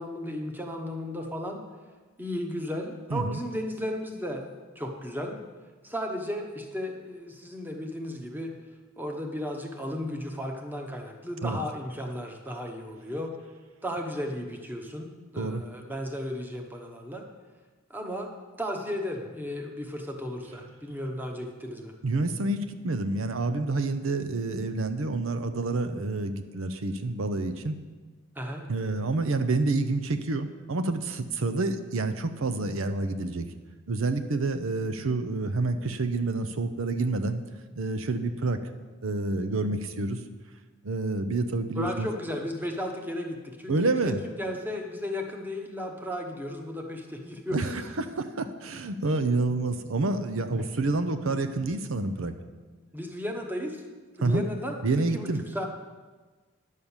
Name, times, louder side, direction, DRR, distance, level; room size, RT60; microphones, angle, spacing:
voice 1, 0.0-1.6 2.2-4.5 4.7-5.4 5.8-8.6 9.0-13.4 13.8-17.3 17.9-18.3 18.6-21.9 28.3-28.7 41.8-47.7 50.5-50.7 52.9-53.8 54.2-55.7, left 1 dB, 10° right, 3 dB, 1.0 m, -34 dB
voice 2, 3.1-3.4 11.4-11.6 15.4-15.6 22.0-27.8 28.7-33.5 33.9-37.5 37.7-38.6 39.0-40.2 40.8-42.1 43.7-44.2 47.5-52.3 54.2-54.4 54.8-55.4, right 3 dB, 75° right, 9 dB, 0.7 m, -28 dB
10.5 x 6.4 x 7.2 m, 1.3 s
head